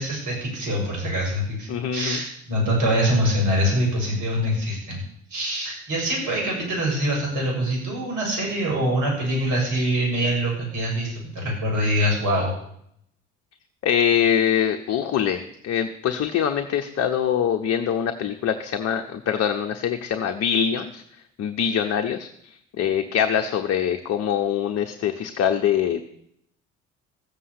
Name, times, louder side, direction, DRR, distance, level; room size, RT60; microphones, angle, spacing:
voice 1, 0.0-5.0 5.3-12.5, equal, 55° right, -1 dB, 7.4 m, -24 dB
voice 2, 1.7-2.2 13.8-21.0 21.4-22.3 22.8-26.0, left 8 dB, 45° left, 5 dB, 1.1 m, -23 dB
15.0 x 7.6 x 8.4 m, 0.72 s
figure-of-eight pair, 55°, 36 cm